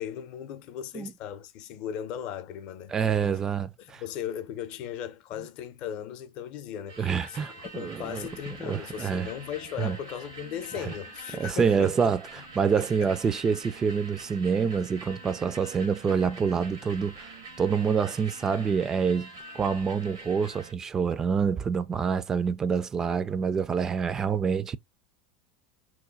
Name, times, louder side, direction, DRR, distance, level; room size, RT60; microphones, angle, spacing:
voice 1, 0.0-3.0 3.2-3.4 3.8-12.2 12.8-13.1 24.1-24.4, left 9 dB, 55° left, 0.6 m, -37 dB
voice 2, 2.9-4.0 7.0-8.3 8.6-9.3 9.8-10.0 10.9-11.0 11.4-12.2 12.6-17.3 17.6-19.3 19.5-24.8, right 6 dB, 25° right, 0.3 m, -26 dB
sound 1, 6.9-20.7, right 2 dB, 85° right, 1.0 m, -45 dB
3.0 x 2.2 x 3.7 m
hypercardioid pair, 85°, 2 cm